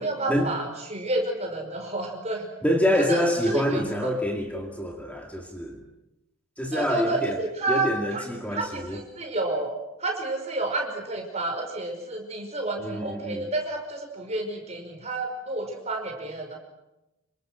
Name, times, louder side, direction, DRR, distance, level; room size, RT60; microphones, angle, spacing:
voice 1, 0.0-2.5 3.1-4.1 6.7-8.2 8.5-16.6, right 2 dB, 30° right, 3 dB, 5.4 m, -30 dB
voice 2, 2.6-5.8 6.6-7.3 7.7-9.0 12.8-13.5, equal, 5° left, 1 dB, 2.1 m, -26 dB
27.5 x 25.0 x 6.3 m, 0.94 s
head